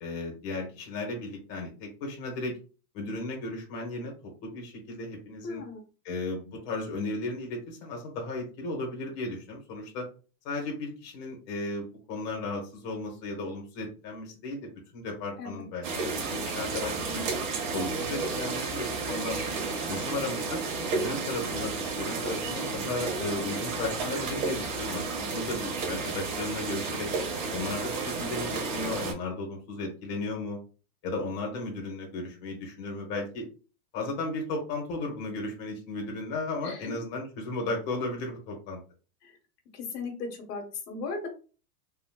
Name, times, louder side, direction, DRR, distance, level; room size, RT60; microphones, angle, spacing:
voice 1, 0.0-2.6 2.9-5.6 6.0-10.1 10.4-17.3 17.7-19.4 19.8-20.6 20.9-27.1 27.5-30.6 31.0-33.5 33.9-38.8, left 2 dB, 35° left, 0 dB, 1.2 m, -35 dB
voice 2, 5.4-5.8 15.4-15.7 36.6-37.0 39.2-39.4 39.7-41.3, left 4 dB, 75° left, 3 dB, 1.5 m, -37 dB
sound 1, 15.8-29.1, right 4 dB, 55° right, 1.4 m, -32 dB
3.6 x 2.5 x 2.3 m, 0.35 s
supercardioid pair, 145°, 48 cm